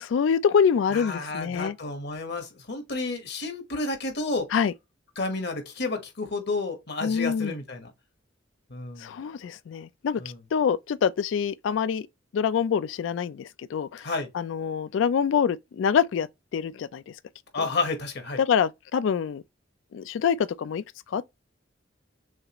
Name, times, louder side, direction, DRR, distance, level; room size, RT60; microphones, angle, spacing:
voice 1, 0.0-1.8 4.5-4.7 7.0-7.5 9.0-10.2 10.5-12.0 12.3-16.3 16.5-17.0 18.4-19.4 19.9-21.4, left 7 dB, 75° left, 0.3 m, -25 dB
voice 2, 0.9-4.5 5.2-7.9 8.7-9.1 10.2-10.4 14.0-14.3 17.5-18.4, left 3 dB, 60° left, 1.2 m, -31 dB
6.4 x 2.4 x 2.9 m
head